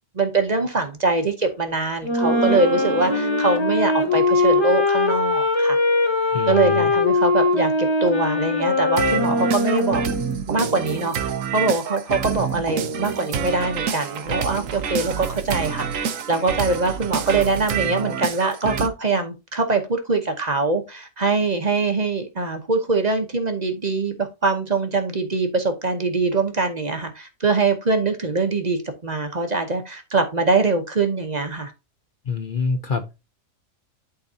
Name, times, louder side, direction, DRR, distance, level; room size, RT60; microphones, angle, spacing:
voice 1, 0.1-5.8 6.5-10.0 10.5-31.7, right 3 dB, 35° right, 0.9 m, -23 dB
Wind instrument woodwind instrument, 2.0-10.4, left 2 dB, 25° left, 1.1 m, -21 dB
sound 1, 2.2-3.9 9.0-18.9, right 7 dB, 80° right, 1.2 m, -28 dB
voice 2, 6.3-6.9 32.3-33.2, left 5 dB, 45° left, 0.8 m, -26 dB
11.5 x 4.0 x 2.7 m
omnidirectional pair, 1.3 m